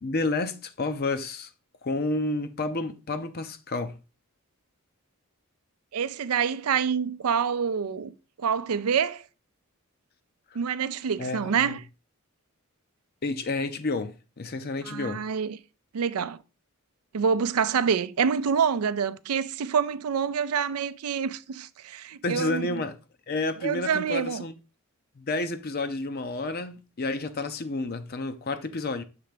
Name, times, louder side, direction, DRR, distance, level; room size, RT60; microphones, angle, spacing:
voice 1, 0.0-1.5 1.8-3.9 11.2-11.8 13.2-15.2 22.2-23.0 23.3-24.5 25.2-29.0, left 2 dB, 45° left, 0.6 m, -30 dB
voice 2, 5.9-8.1 8.4-9.2 10.5-11.8 14.8-15.6 15.9-16.4 17.1-22.8 23.6-24.4, right 6 dB, 80° right, 0.5 m, -27 dB
6.8 x 3.4 x 5.0 m
head